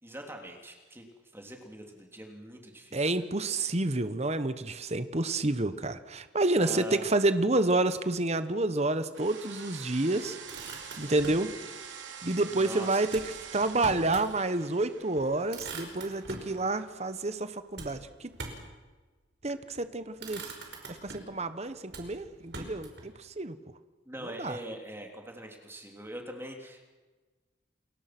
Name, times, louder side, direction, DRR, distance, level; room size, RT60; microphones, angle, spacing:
voice 1, 0.0-1.0 1.3-3.1 6.5-7.1 12.4-13.0 24.0-26.8, equal, 15° right, 2 dB, 3.3 m, -42 dB
voice 2, 2.9-11.5 12.2-13.2 13.5-18.3 19.4-20.5 20.9-23.6 24.2-24.6, right 2 dB, 35° right, 11 dB, 1.2 m, -29 dB
sound 1, 9.1-17.3, right 6 dB, 80° right, 3.4 m, -46 dB
Motor vehicle (road), 10.2-11.5 13.1-14.3 14.7-14.8 15.1-16.5 17.8-18.8 19.6-19.9 20.2-21.4 21.9-23.1, right 3 dB, 60° right, 5.3 m, -43 dB
29.5 x 22.5 x 6.1 m, 1.3 s
head